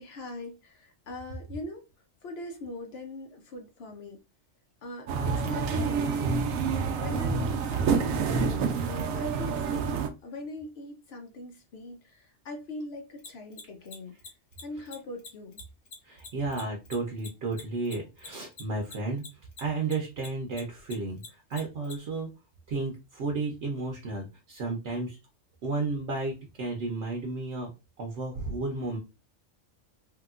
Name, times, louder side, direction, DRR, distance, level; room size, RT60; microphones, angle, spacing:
voice 1, 0.0-1.9 2.2-4.2 4.8-6.4 6.9-9.9 10.2-14.2 14.6-15.6, left 2 dB, 60° left, 0.8 m, -41 dB
sound 1, 5.1-10.1, right 5 dB, 85° right, 1.0 m, -28 dB
Mechanisms, 13.2-19.9 20.2-21.9, left 4 dB, 75° left, 1.2 m, -44 dB
voice 2, 16.1-19.2 19.6-21.2 21.5-22.3 22.7-25.2 25.6-27.7 28.0-29.0, right 3 dB, 65° right, 0.9 m, -32 dB
3.1 x 2.8 x 2.3 m
omnidirectional pair, 1.4 m